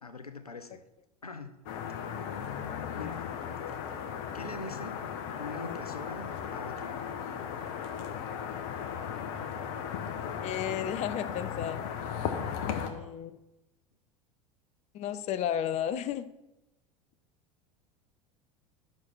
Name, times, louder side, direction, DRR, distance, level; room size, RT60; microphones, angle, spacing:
voice 1, 0.0-0.8 1.2-1.6 3.0-3.4 4.3-5.0 5.4-7.0, left 3 dB, 90° left, 10 dB, 0.7 m, -42 dB
sound 1, 1.7-12.9, left 8 dB, 50° left, 1.2 m, -36 dB
voice 2, 10.4-11.9 12.7-13.4 14.9-16.3, left 9 dB, 35° left, 13 dB, 0.6 m, -33 dB
10.5 x 6.5 x 4.5 m, 0.95 s
figure-of-eight pair, 75°, 19 cm